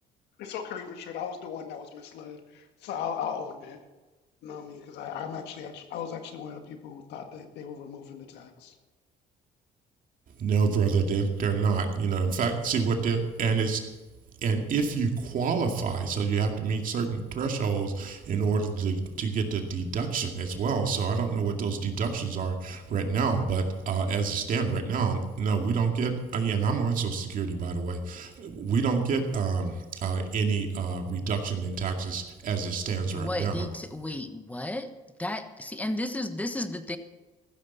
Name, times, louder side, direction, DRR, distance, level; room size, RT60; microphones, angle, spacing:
voice 1, 0.4-3.8 4.4-8.8, left 7 dB, 80° left, 6 dB, 1.7 m, -38 dB
voice 2, 10.4-13.8 14.4-33.7, right 5 dB, 55° right, 3 dB, 2.3 m, -28 dB
voice 3, 33.1-34.9 35.2-37.0, left 1 dB, 10° left, 9 dB, 1.1 m, -33 dB
15.0 x 13.0 x 4.1 m, 1.2 s
cardioid pair, 110°, 17 cm